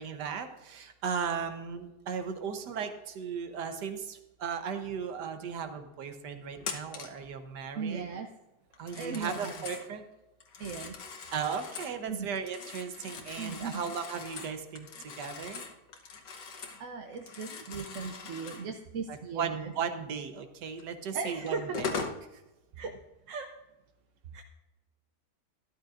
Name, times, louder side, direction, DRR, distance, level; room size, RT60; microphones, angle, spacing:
voice 1, 0.0-8.0 8.8-10.0 11.3-15.6 19.1-21.8, right 6 dB, 80° right, 8 dB, 1.5 m, -36 dB
Telephone, 6.6-7.2 8.7-9.9 10.4-12.0 12.4-16.8 17.1-18.7 20.8-20.9 21.5-22.2, left 5 dB, 85° left, 1.6 m, -41 dB
voice 2, 7.8-8.3 8.9-9.7 10.6-10.9 12.1-12.3 13.4-13.8 16.8-19.7 21.1-21.8 22.8-22.9 23.3-23.5 24.3-24.4, right 5 dB, 60° right, 4 dB, 0.9 m, -37 dB
12.5 x 11.5 x 2.5 m, 0.99 s
omnidirectional pair, 1.8 m